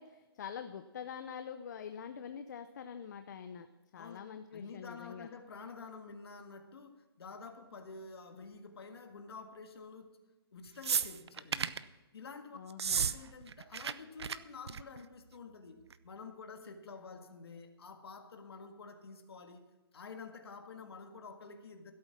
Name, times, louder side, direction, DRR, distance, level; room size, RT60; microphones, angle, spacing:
voice 1, 0.0-3.7 3.9-5.3 12.5-13.1, left 7 dB, 45° left, 9 dB, 0.7 m, -45 dB
voice 2, 4.0-10.1 10.5-11.8 12.1-12.6 12.9-19.7 19.9-21.9, left 4 dB, 70° left, 5 dB, 1.8 m, -49 dB
sound 1, 10.8-11.8 12.7-13.2 13.4-13.9 14.2-14.4 14.7-15.0 15.9-16.0, right 7 dB, 80° right, 0.7 m, -33 dB
16.0 x 8.7 x 6.0 m, 1.2 s
hypercardioid pair, 165°, 14 cm